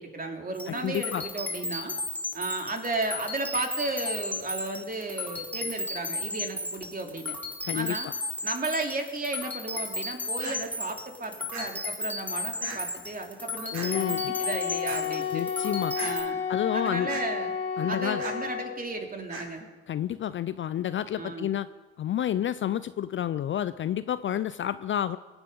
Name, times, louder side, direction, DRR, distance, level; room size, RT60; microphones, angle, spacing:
voice 1, 0.0-2.0 2.3-7.4 7.7-8.1 8.4-15.5 16.0-16.4 16.7-17.5 17.9-19.7 21.2-21.5, right 2 dB, 25° right, 3 dB, 2.9 m, -34 dB
sound 1, 0.6-16.2, left 2 dB, 5° left, 4.1 m, -34 dB
voice 2, 0.7-1.3 7.6-8.0 13.7-14.3 15.3-15.9 16.5-17.1 17.8-18.2 19.9-21.7 22.0-25.2, left 10 dB, 40° left, 15 dB, 0.5 m, -29 dB
sound 2, 10.4-10.6 11.5-11.7 12.6-12.8 13.7-13.9 14.8-15.0 16.0-16.1 17.1-17.2 18.2-18.4 19.3-19.5, right 3 dB, 55° right, 4.6 m, -38 dB
Wind instrument woodwind instrument, 13.9-18.8, left 7 dB, 65° left, 2.4 m, -31 dB
23.5 x 9.0 x 5.3 m, 1.3 s
hypercardioid pair, 55°, 33 cm